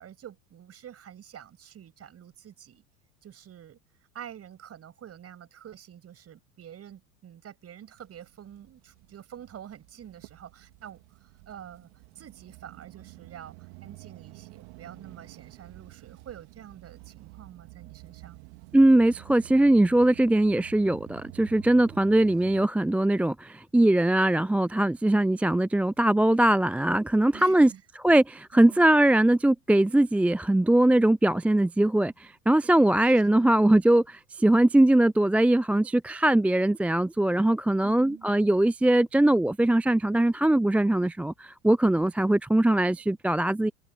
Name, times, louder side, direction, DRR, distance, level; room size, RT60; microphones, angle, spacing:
voice 1, 0.0-2.8 3.2-3.8 4.1-11.9 12.2-18.4 27.3-27.8 28.5-28.8 33.3-33.6 37.8-38.3, right 9 dB, 35° right, 6.9 m, -47 dB
sound 1, 8.0-22.7, right 32 dB, 50° right, 2.3 m, -49 dB
voice 2, 18.7-27.7 28.0-43.7, right 1 dB, 5° right, 0.5 m, -21 dB
figure-of-eight pair, 80°, 44 cm